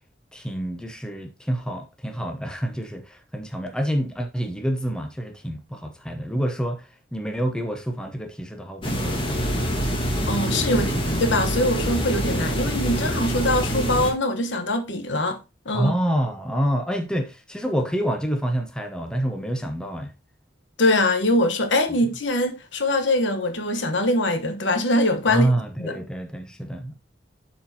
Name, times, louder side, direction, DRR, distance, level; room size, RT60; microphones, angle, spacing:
voice 1, 0.3-9.7 10.7-10.9 12.3-12.7 15.7-20.1 25.3-26.9, right 1 dB, 5° left, 0.8 m, -27 dB
sound 1, 8.8-14.1, equal, 25° left, 1.5 m, -25 dB
voice 2, 10.2-15.4 15.6-15.9 20.8-25.5 25.8-25.9, left 1 dB, 70° left, 1.2 m, -23 dB
12.0 x 4.4 x 2.8 m
head